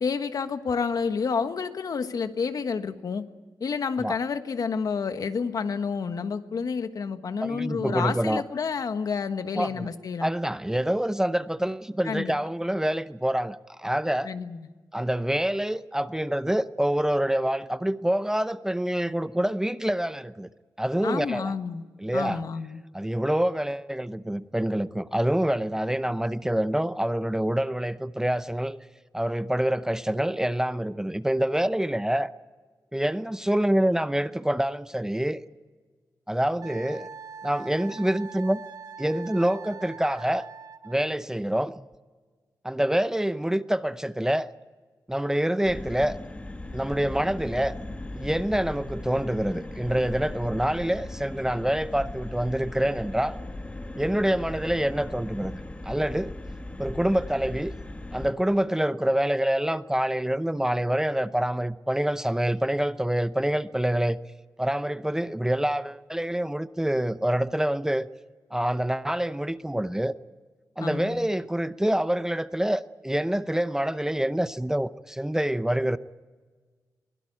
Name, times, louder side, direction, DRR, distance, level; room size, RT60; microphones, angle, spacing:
voice 1, 0.0-3.2 3.6-10.3 12.0-12.4 14.2-14.6 21.0-21.8 22.1-22.8 70.8-71.3, left 5 dB, 65° left, 1.4 m, -29 dB
voice 2, 7.4-8.4 9.6-9.9 10.2-14.3 14.9-20.5 20.8-21.5 22.0-22.4 22.9-28.8 29.1-32.3 32.9-35.4 36.3-37.1 37.4-38.6 39.0-40.5 40.8-41.8 42.6-44.5 45.1-46.2 46.7-47.7 48.1-53.4 54.0-55.5 55.9-56.3 56.8-57.7 58.1-64.2 64.6-68.1 68.5-70.1 70.8-76.0, right 1 dB, 10° right, 0.7 m, -26 dB
Wind instrument woodwind instrument, 36.6-41.1, right 6 dB, 80° right, 1.5 m, -43 dB
sound 1, 45.6-58.3, left 2 dB, 20° left, 1.6 m, -38 dB
23.0 x 17.0 x 8.7 m
cardioid pair, 80°, 7 cm